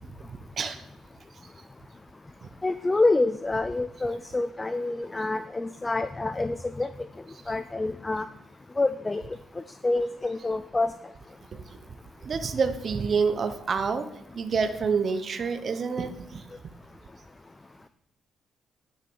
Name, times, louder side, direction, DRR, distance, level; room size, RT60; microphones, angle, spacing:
voice 1, 2.6-6.9 7.5-8.3 8.8-9.2 9.8-10.9, left 2 dB, 20° left, 12 dB, 0.5 m, -27 dB
voice 2, 12.2-14.1 14.3-16.4, right 5 dB, 45° right, 9 dB, 0.9 m, -27 dB
10.0 x 6.7 x 6.2 m, 0.81 s
cardioid pair, 90°, 0 cm